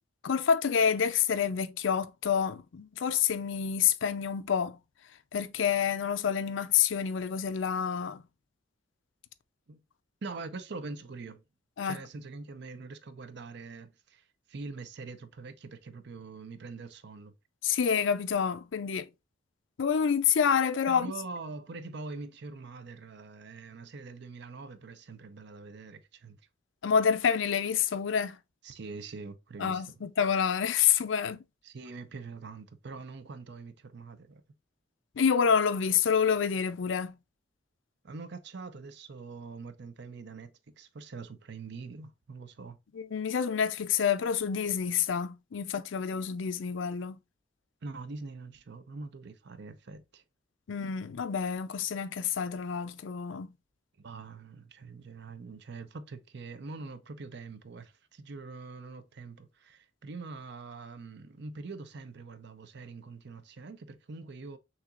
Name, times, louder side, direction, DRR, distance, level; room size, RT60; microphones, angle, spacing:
voice 1, 0.2-4.8 5.3-8.2 11.8-12.0 17.6-19.1 19.8-21.1 26.8-28.4 29.6-31.4 35.2-37.2 42.9-47.2 50.7-53.5, left 7 dB, 75° left, 0.5 m, -28 dB
voice 2, 10.2-11.4 11.8-17.3 20.9-26.4 28.6-30.0 31.6-34.4 38.0-42.8 47.8-50.2 54.0-64.6, right 4 dB, 60° right, 0.6 m, -44 dB
6.3 x 2.9 x 2.4 m
head